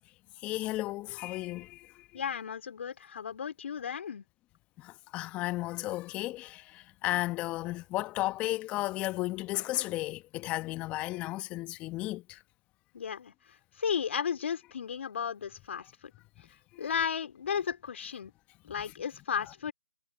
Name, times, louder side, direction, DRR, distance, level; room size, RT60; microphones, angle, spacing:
voice 1, 0.4-2.2 4.8-12.4 16.7-16.9, left 17 dB, 10° left, 1.2 m, -34 dB
voice 2, 2.1-4.3 12.9-13.3 13.8-16.1 16.8-18.3 18.6-19.7, left 7 dB, 45° left, 3.6 m, -34 dB
figure-of-eight pair, 155°, 10 cm